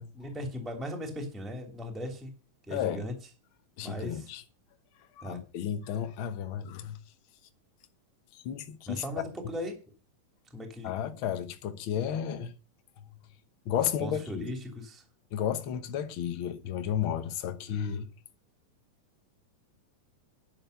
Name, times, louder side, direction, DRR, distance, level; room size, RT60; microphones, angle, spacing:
voice 1, 0.1-2.3 2.7-3.1 3.8-4.3 5.2-5.4 8.9-9.8 10.5-10.9 13.8-15.0, equal, ahead, 2.3 m, -38 dB
voice 2, 2.7-3.0 3.8-4.4 5.1-7.0 8.3-9.0 10.8-12.5 13.6-14.5 15.3-18.1, left 9 dB, 60° left, 1.4 m, -33 dB
11.0 x 6.8 x 6.7 m
omnidirectional pair, 3.7 m